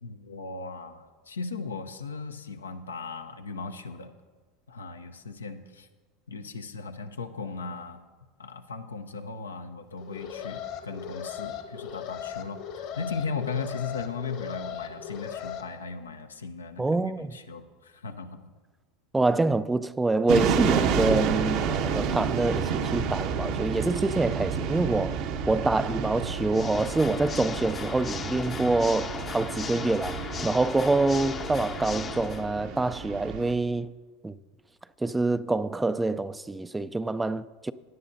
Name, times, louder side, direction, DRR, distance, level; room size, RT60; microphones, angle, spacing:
voice 1, 0.0-4.1 4.7-5.9 6.3-8.0 8.4-18.4, left 4 dB, 90° left, 0.7 m, -37 dB
Alarm, 10.0-15.6, left 8 dB, 60° left, 1.3 m, -38 dB
voice 2, 16.8-17.3 19.1-25.2 25.5-33.9 34.2-34.4 35.0-37.7, right 2 dB, 10° right, 0.4 m, -26 dB
sound 1, 20.3-33.5, right 6 dB, 60° right, 0.9 m, -30 dB
Water / Mechanisms, 26.5-32.5, left 6 dB, 30° left, 0.7 m, -37 dB
17.5 x 10.0 x 2.7 m
hypercardioid pair, 80°, 0 cm